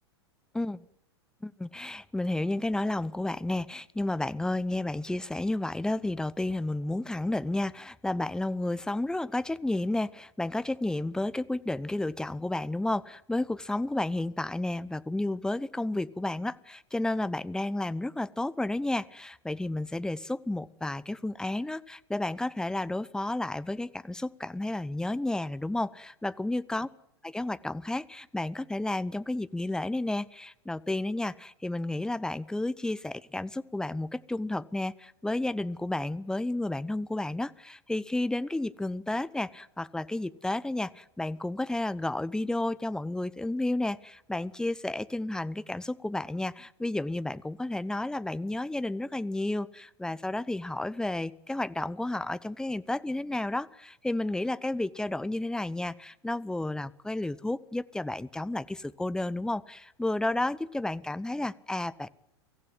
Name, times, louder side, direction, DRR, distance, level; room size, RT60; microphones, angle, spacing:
voice 1, 1.4-26.9 27.2-62.1, left 2 dB, 5° left, 16 dB, 0.8 m, -32 dB
24.5 x 15.0 x 9.6 m, 0.82 s
figure-of-eight pair, 90°, 14 cm